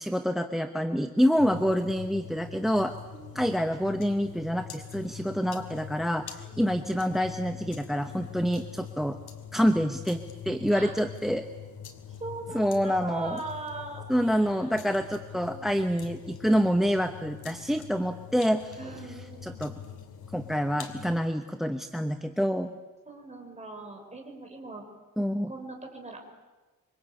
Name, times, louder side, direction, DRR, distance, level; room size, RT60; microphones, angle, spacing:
voice 1, 0.0-3.0 3.3-9.2 9.5-11.5 12.5-13.4 14.1-18.8 19.4-19.7 20.3-22.7 25.2-25.5, equal, ahead, 7 dB, 0.9 m, -27 dB
sound 1, 1.4-21.2, left 8 dB, 85° left, 2.8 m, -44 dB
voice 2, 3.1-3.6 6.5-6.7 10.7-10.9 12.2-14.9 15.5-15.7 18.8-20.0 23.1-24.8 25.5-26.2, right 3 dB, 20° right, 2 dB, 5.6 m, -41 dB
26.5 x 25.0 x 8.8 m, 1.2 s
wide cardioid pair, 160°, 36 cm